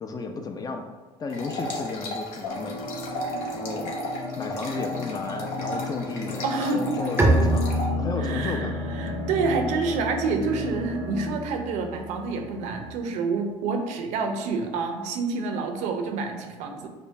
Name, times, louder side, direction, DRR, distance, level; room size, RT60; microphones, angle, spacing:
voice 1, 0.0-0.9 1.2-2.9 3.5-3.9 4.4-6.4 6.7-8.8 9.0-9.3, left 4 dB, 30° left, 5 dB, 0.4 m, -33 dB
sound 1, 1.3-7.9, left 1 dB, 70° left, 0.7 m, -35 dB
sound 2, 2.5-11.3, left 3 dB, 85° left, 1.2 m, -35 dB
voice 2, 6.4-6.8 8.2-16.9, right 4 dB, 70° right, 5 dB, 0.5 m, -28 dB
Bowed string instrument, 7.2-12.8, right 1 dB, 20° right, 0.5 m, -28 dB
5.0 x 2.1 x 2.6 m, 1.3 s
supercardioid pair, 85°, 13 cm